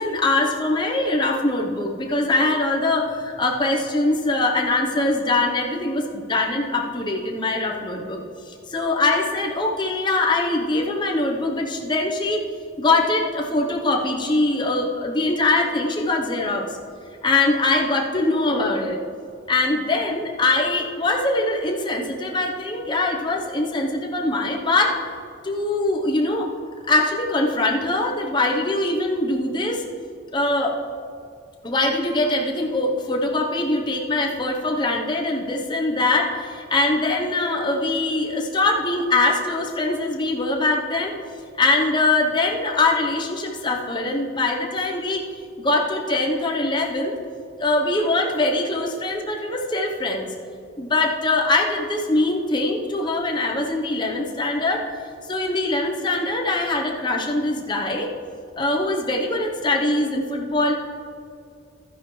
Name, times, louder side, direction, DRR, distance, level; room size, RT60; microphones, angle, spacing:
voice 1, 0.0-8.2 8.5-12.4 12.8-16.7 17.2-19.0 19.5-24.9 25.4-26.5 26.9-29.8 30.3-30.8 31.6-41.1 41.6-45.3 45.6-47.1 47.6-50.3 50.8-54.8 55.2-58.1 58.6-60.7, left 2 dB, 25° left, 0 dB, 0.9 m, -22 dB
12.0 x 10.0 x 3.2 m, 2.4 s
head